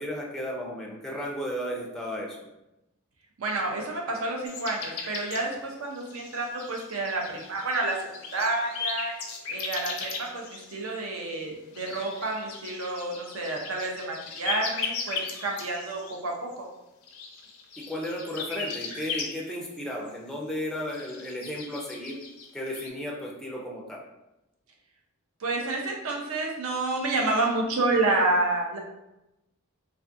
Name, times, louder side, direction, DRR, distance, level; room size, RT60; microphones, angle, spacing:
voice 1, 0.0-2.5 17.8-22.2 22.5-24.0, equal, ahead, -2 dB, 0.4 m, -34 dB
voice 2, 3.4-8.0 8.3-9.1 9.5-16.7 25.4-28.8, right 2 dB, 75° right, 0 dB, 0.6 m, -29 dB
sound 1, 4.5-5.5 5.9-10.9 11.7-16.2 16.5-16.6 17.0-19.8 20.1-20.2 20.9-22.9, left 5 dB, 85° left, 0.5 m, -37 dB
2.5 x 2.4 x 2.5 m, 0.92 s
head